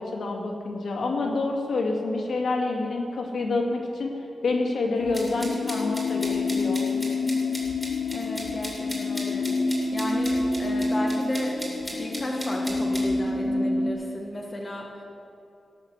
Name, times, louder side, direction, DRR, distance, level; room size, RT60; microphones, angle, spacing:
voice 1, 0.0-4.1 4.4-6.9, left 3 dB, 65° left, 0 dB, 2.2 m, -27 dB
sound 1, 5.0-13.9, left 3 dB, 85° left, 1.0 m, -27 dB
sound 2, 5.1-13.0, right 1 dB, 10° right, 3.1 m, -38 dB
voice 2, 8.1-11.6 11.9-15.0, left 1 dB, 20° left, -1 dB, 1.3 m, -34 dB
17.5 x 6.6 x 8.1 m, 2.7 s
wide cardioid pair, 165°, 0 cm